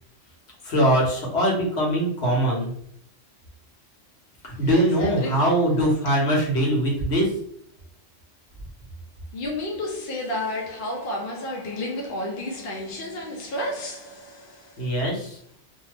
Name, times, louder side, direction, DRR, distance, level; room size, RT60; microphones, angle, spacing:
voice 1, 0.6-2.7 4.4-7.3 14.8-15.4, right 1 dB, 75° left, 1.2 m, -22 dB
voice 2, 4.5-5.4 9.3-14.9, left 1 dB, 60° left, 0.8 m, -31 dB
2.6 x 2.2 x 3.3 m
omnidirectional pair, 1.1 m